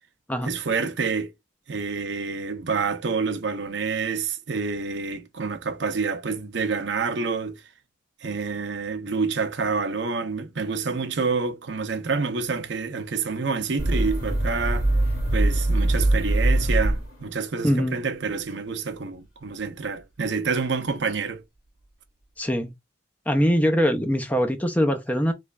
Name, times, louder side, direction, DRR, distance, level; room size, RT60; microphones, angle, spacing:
voice 1, 0.4-1.3 1.7-7.6 8.2-14.9 15.3-21.4, right 4 dB, 60° right, 0.6 m, -28 dB
sound 1, 13.8-17.5, right 1 dB, 85° left, 2.1 m, -22 dB
voice 2, 17.6-18.0 22.4-22.7 23.3-25.3, equal, 10° left, 0.5 m, -22 dB
3.3 x 3.1 x 2.4 m
head